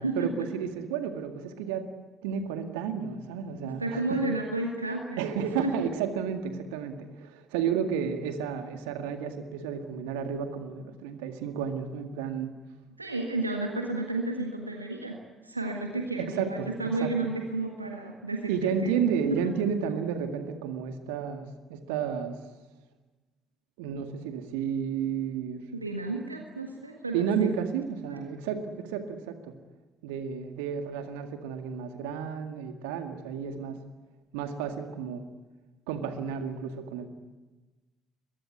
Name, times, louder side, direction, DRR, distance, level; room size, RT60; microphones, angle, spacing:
voice 1, 0.0-1.9 2.2-4.2 5.2-12.5 16.2-17.3 18.5-22.4 23.8-25.6 27.1-29.5 30.0-33.8 34.3-35.2 35.9-37.1, right 7 dB, 70° right, 7 dB, 2.0 m, -32 dB
voice 2, 3.8-5.3 5.6-5.7 13.0-15.2 15.4-18.9 25.7-27.5, right 2 dB, 90° right, 2 dB, 1.7 m, -32 dB
22.5 x 22.0 x 9.5 m, 1.2 s
figure-of-eight pair, 50°, 0 cm